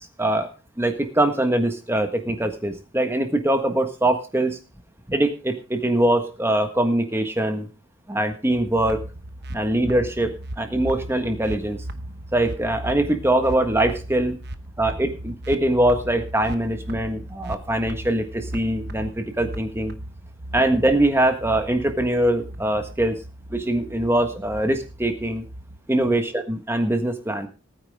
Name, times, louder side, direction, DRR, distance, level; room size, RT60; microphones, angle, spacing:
voice 1, 0.8-4.6 5.1-7.7 8.1-9.0 9.5-11.8 12.3-14.4 14.8-19.9 20.5-23.2 23.5-25.4 25.9-27.5, right 1 dB, 10° right, 6 dB, 1.5 m, -22 dB
sound 1, 8.6-25.8, right 1 dB, 55° right, 1.1 m, -37 dB
19.0 x 9.5 x 3.7 m, 0.33 s
head